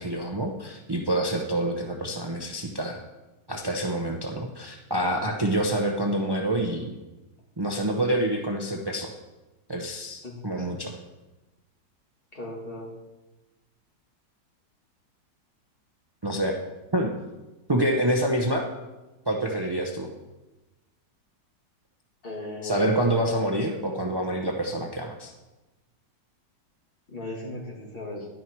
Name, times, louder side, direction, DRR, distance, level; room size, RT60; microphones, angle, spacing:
voice 1, 0.0-3.0 3.5-6.9 7.6-9.1 9.7-11.0 16.2-16.5 16.9-17.1 17.7-18.7 19.3-20.1 22.6-25.3, right 1 dB, 35° right, 1 dB, 0.3 m, -27 dB
voice 2, 12.3-12.9 22.2-23.4 27.1-28.3, left 1 dB, 30° left, -2 dB, 2.6 m, -37 dB
11.0 x 10.0 x 4.6 m, 1.1 s
omnidirectional pair, 1.9 m